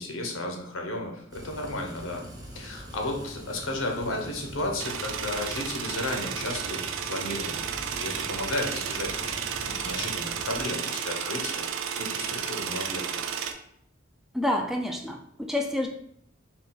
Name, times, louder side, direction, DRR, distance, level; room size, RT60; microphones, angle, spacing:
voice 1, 0.0-2.3 2.5-11.7 12.0-13.2, left 2 dB, 85° left, 2 dB, 0.8 m, -34 dB
sound 1, 1.3-10.7, right 1 dB, 20° right, 0.8 m, -43 dB
sound 2, 4.8-13.5, right 7 dB, 75° right, 0.4 m, -32 dB
voice 2, 14.3-15.9, left 1 dB, ahead, 2 dB, 0.3 m, -28 dB
3.9 x 2.3 x 3.9 m, 0.71 s
head